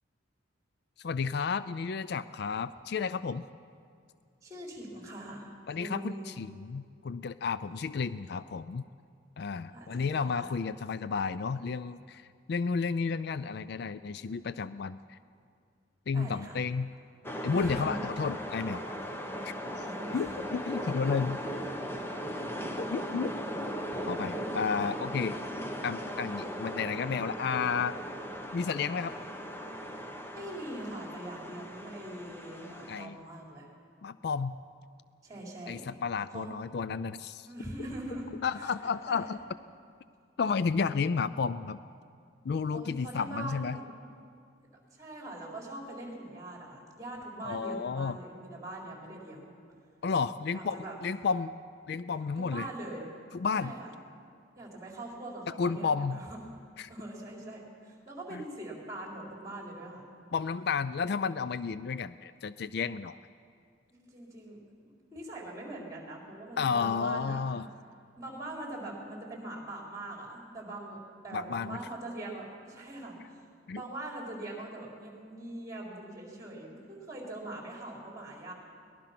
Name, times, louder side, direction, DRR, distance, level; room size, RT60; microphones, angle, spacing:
voice 1, 1.0-3.5 5.7-8.8 9.4-15.2 16.1-16.9 17.4-18.9 19.4-19.5 20.1-21.4 22.8-23.3 24.1-25.4 25.8-28.0 28.5-29.2 32.9-33.2 34.0-34.6 35.7-37.5 38.4-39.4 40.4-41.8 42.4-43.8 47.4-48.2 50.0-51.5 51.9-52.7 53.3-53.7 55.6-56.2 56.8-56.9 58.3-58.4 60.3-63.2 66.6-67.6 71.3-71.8 73.7-73.8, left 5 dB, 60° left, 14 dB, 0.4 m, -32 dB
voice 2, 4.4-5.5 5.7-6.4 9.7-10.5 16.1-16.6 17.5-18.0 19.8-20.4 22.1-22.3 23.9-24.0 30.3-33.7 35.2-35.8 36.3-36.5 37.5-38.3 38.5-38.7 39.1-39.3 42.7-43.8 44.9-49.5 50.5-51.0 52.4-53.1 53.6-53.9 54.6-56.4 56.9-60.0 63.9-64.6 64.8-67.5 68.2-71.0 71.2-73.4 73.7-78.5, right 1 dB, 20° right, -1 dB, 4.1 m, -42 dB
sound 1, 17.2-33.1, equal, 10° left, 1.2 m, -38 dB
22.5 x 19.5 x 6.0 m, 2.3 s
head